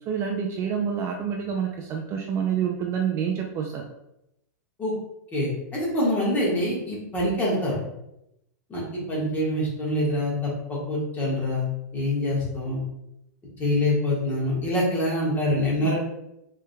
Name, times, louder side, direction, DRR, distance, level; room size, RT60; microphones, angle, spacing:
voice 1, 0.1-3.9 15.8-16.0, right 7 dB, 25° right, 1 dB, 0.4 m, -28 dB
voice 2, 5.3-7.8 8.7-12.8 13.6-16.0, left 1 dB, 15° left, -5 dB, 1.5 m, -25 dB
4.8 x 3.3 x 2.2 m, 0.84 s
supercardioid pair, 145°, 10 cm